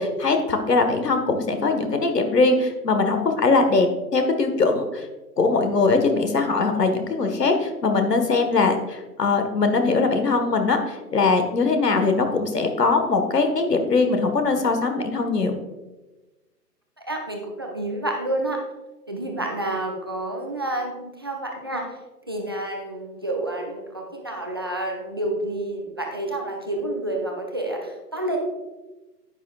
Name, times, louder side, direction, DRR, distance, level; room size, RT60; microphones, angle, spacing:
voice 1, 0.0-5.1 5.4-15.5, left 3 dB, 75° left, 6 dB, 1.6 m, -21 dB
voice 2, 17.0-18.6 19.1-22.0 22.3-28.4, right 1 dB, 15° right, 1 dB, 0.4 m, -29 dB
10.5 x 9.1 x 2.4 m, 1.1 s
figure-of-eight pair, 130°, 49 cm